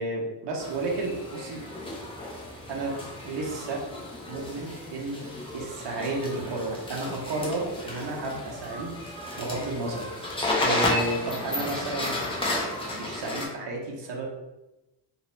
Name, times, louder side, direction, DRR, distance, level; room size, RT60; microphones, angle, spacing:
voice 1, 0.0-1.6 2.7-3.0 3.2-3.8 4.3-5.3 5.5-12.1 12.9-14.3, right 2 dB, 65° right, -1 dB, 0.8 m, -32 dB
sound 1, 0.6-13.5, left 1 dB, 15° left, 0.4 m, -33 dB
2.5 x 2.0 x 3.0 m, 1.0 s
cardioid pair, 120°, 46 cm